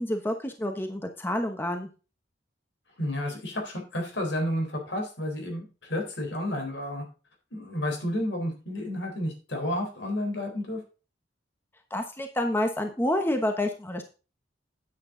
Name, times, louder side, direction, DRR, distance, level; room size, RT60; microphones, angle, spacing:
voice 1, 0.0-1.9 11.9-14.0, left 1 dB, 10° left, 5 dB, 1.0 m, -28 dB
voice 2, 3.0-7.0 7.5-10.8, left 1 dB, 80° left, 2 dB, 4.0 m, -31 dB
9.5 x 7.8 x 3.8 m, 0.33 s
head